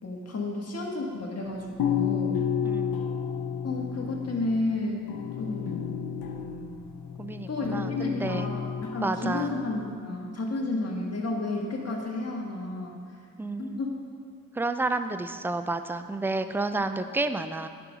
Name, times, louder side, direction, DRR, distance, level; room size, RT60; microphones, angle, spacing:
voice 1, 0.0-2.5 3.6-5.0 5.4-5.9 7.5-12.9 13.6-13.9, left 2 dB, 45° left, -1 dB, 1.7 m, -31 dB
sound 1, 1.8-10.0, left 8 dB, 90° left, 0.7 m, -32 dB
voice 2, 2.6-3.1 7.2-8.6 9.0-9.5 13.4-13.8 14.5-17.7, right 2 dB, 5° right, 9 dB, 0.4 m, -30 dB
9.9 x 5.3 x 4.9 m, 2.1 s
cardioid pair, 70°, 34 cm